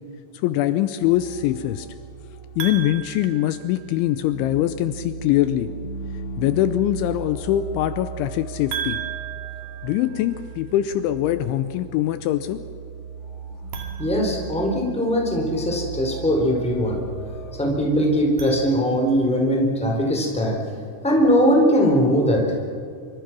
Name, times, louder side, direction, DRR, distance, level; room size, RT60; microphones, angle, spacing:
voice 1, 0.4-1.9 2.6-5.7 6.4-9.0 9.8-12.6, left 13 dB, 80° left, 12 dB, 2.9 m, -23 dB
sound 1, 1.0-17.7, right 5 dB, 45° left, 3.2 m, -37 dB
sound 2, 2.6-4.3 8.7-10.7 13.6-15.2 18.1-19.3, right 9 dB, 50° right, 3.8 m, -36 dB
voice 2, 14.0-17.0 17.5-20.6 21.0-22.4, equal, ahead, 0 dB, 3.1 m, -20 dB
26.5 x 24.0 x 6.1 m, 2.4 s
omnidirectional pair, 5.7 m